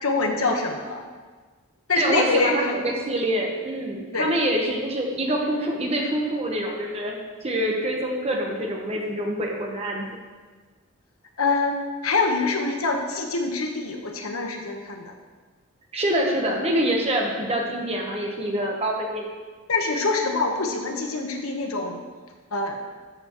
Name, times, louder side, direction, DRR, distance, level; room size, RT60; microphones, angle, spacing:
voice 1, 0.0-1.0 1.9-2.9 4.1-4.3 11.4-11.8 12.0-15.1 19.7-22.0 22.5-22.7, left 3 dB, 75° left, 2 dB, 1.2 m, -25 dB
voice 2, 2.0-7.1 7.4-10.1 15.9-19.3, right 1 dB, 30° right, 0 dB, 1.1 m, -25 dB
13.0 x 7.0 x 3.1 m, 1.4 s
head